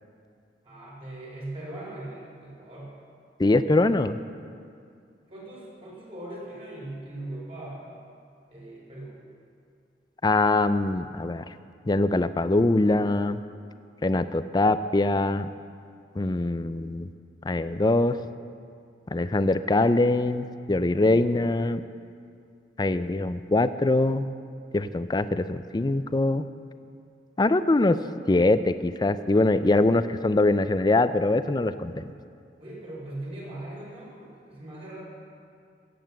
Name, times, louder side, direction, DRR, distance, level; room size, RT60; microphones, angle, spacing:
voice 1, 0.6-2.9 5.3-7.9 8.5-9.2 32.6-35.0, right 1 dB, 35° right, -5 dB, 4.6 m, -40 dB
voice 2, 3.4-4.2 10.2-11.5 11.9-13.4 14.0-15.5 16.2-17.1 17.4-18.2 19.1-21.8 22.8-24.3 24.7-26.5 27.4-28.0 28.3-32.0, left 2 dB, 25° left, 12 dB, 0.4 m, -23 dB
16.0 x 7.9 x 7.6 m, 2.3 s
head